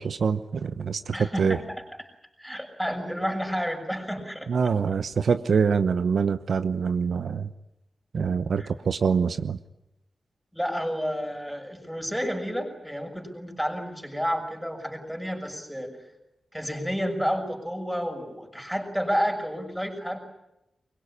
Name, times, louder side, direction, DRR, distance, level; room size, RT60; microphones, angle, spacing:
voice 1, 0.0-1.6 4.5-7.5 8.1-9.6, right 6 dB, 80° right, 11 dB, 1.0 m, -25 dB
voice 2, 1.1-1.8 2.4-4.7 8.6-8.7 10.5-16.0 16.5-20.2, equal, ahead, 3 dB, 6.1 m, -30 dB
24.0 x 21.5 x 9.9 m, 0.88 s
wide cardioid pair, 105°, 0 cm